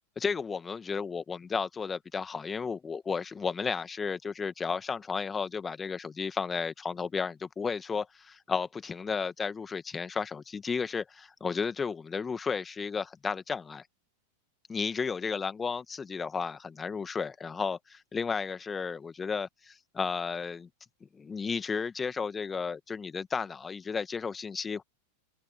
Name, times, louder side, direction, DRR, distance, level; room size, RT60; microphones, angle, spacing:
voice 1, 0.2-13.8 14.7-20.7 21.1-24.8, left 5 dB, 15° left, 2.1 m, -33 dB
open air
figure-of-eight pair, 90°, 0 cm